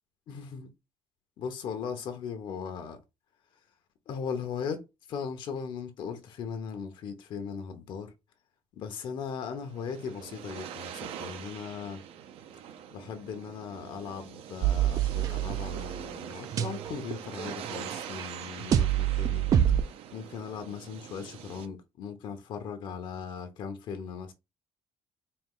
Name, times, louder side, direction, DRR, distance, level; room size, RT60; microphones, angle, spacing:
voice 1, 0.3-0.7 1.4-3.0 4.1-4.8 5.1-8.1 8.8-12.0 12.9-19.4 20.1-24.3, left 6 dB, 55° left, 0.8 m, -38 dB
sound 1, 9.4-21.7, right 9 dB, 75° right, 0.7 m, -43 dB
sound 2, 14.6-16.0 16.3-19.8, right 10 dB, 35° right, 0.3 m, -27 dB
4.3 x 2.3 x 3.7 m
cardioid pair, 155°, 10 cm